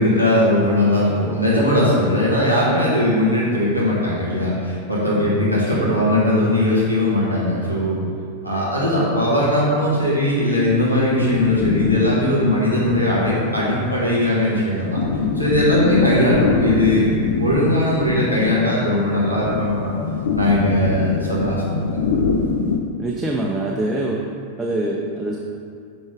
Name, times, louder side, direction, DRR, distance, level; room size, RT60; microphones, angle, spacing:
voice 1, 0.0-8.0 8.4-15.0 15.3-19.9 20.3-21.6 21.9-22.0, left 1 dB, 90° left, -6 dB, 1.5 m, -19 dB
sound 1, 11.2-22.8, left 4 dB, 65° left, 0.5 m, -24 dB
voice 2, 23.0-24.2 24.6-25.4, right 1 dB, 10° right, -2 dB, 0.5 m, -25 dB
6.3 x 3.5 x 4.8 m, 2.3 s
figure-of-eight pair, 90°, 0 cm